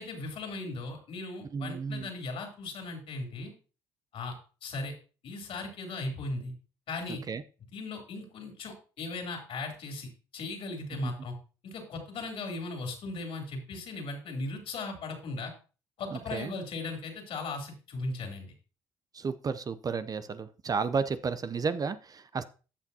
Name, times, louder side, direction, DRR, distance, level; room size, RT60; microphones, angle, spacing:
voice 1, 0.0-3.5 4.1-4.3 4.6-4.9 5.2-6.5 6.9-7.2 7.7-11.3 11.6-15.5 16.0-18.5, left 3 dB, 60° left, 3 dB, 3.3 m, -37 dB
voice 2, 1.5-2.1 7.3-7.4 11.0-11.1 16.1-16.5 19.1-22.4, right 5 dB, 35° right, 13 dB, 0.7 m, -32 dB
15.0 x 5.8 x 2.8 m, 0.35 s
supercardioid pair, 70°, 11 cm